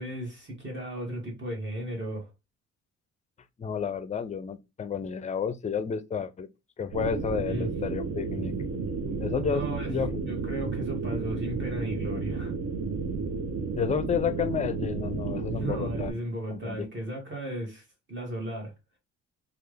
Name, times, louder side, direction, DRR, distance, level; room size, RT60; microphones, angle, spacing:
voice 1, 0.0-2.3 7.4-7.7 9.5-9.9 10.3-12.5 15.5-18.7, right 1 dB, 40° right, 1.5 m, -35 dB
voice 2, 3.6-6.5 6.8-8.5 9.2-9.6 9.9-10.1 13.8-16.9, left 6 dB, 25° left, 0.4 m, -31 dB
sound 1, 6.9-16.1, right 4 dB, 60° right, 0.8 m, -32 dB
3.3 x 2.4 x 3.2 m
cardioid pair, 90°, 30 cm